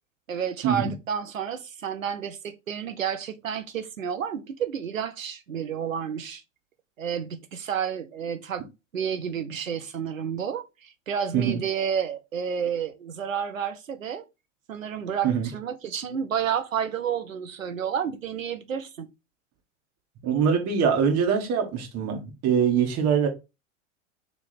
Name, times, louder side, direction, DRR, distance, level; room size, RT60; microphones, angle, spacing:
voice 1, 0.3-6.4 7.0-8.6 8.9-14.2 14.7-19.1, right 8 dB, 90° right, 0.7 m, -30 dB
voice 2, 20.2-23.3, right 7 dB, 40° right, 1.8 m, -23 dB
3.4 x 3.1 x 4.1 m
hypercardioid pair, 95°, 38 cm